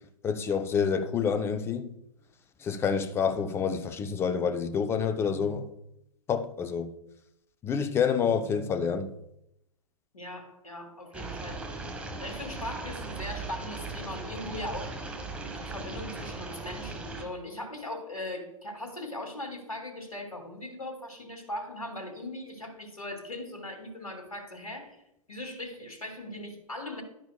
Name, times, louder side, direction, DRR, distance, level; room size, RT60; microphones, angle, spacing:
voice 1, 0.2-1.9 2.6-5.7 6.3-6.9 7.6-9.1, left 6 dB, 15° left, 0.6 m, -28 dB
voice 2, 10.1-11.8 12.2-15.0 15.4-25.0 25.3-27.0, left 1 dB, 75° left, 2.6 m, -39 dB
sound 1, 11.1-17.2, right 3 dB, 5° right, 1.3 m, -38 dB
11.5 x 10.0 x 2.4 m
figure-of-eight pair, 115°, 18 cm